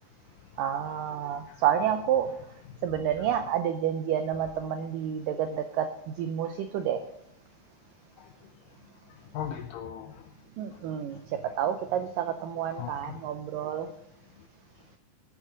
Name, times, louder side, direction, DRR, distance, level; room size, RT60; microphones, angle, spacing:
voice 1, 0.6-2.3 2.8-7.0 10.6-13.9, right 9 dB, 90° right, 1.9 m, -29 dB
voice 2, 1.2-1.6 8.2-8.3 9.1-10.2 11.1-11.2 12.7-13.2, left 9 dB, 85° left, 1.9 m, -39 dB
19.0 x 9.2 x 3.9 m
omnidirectional pair, 4.8 m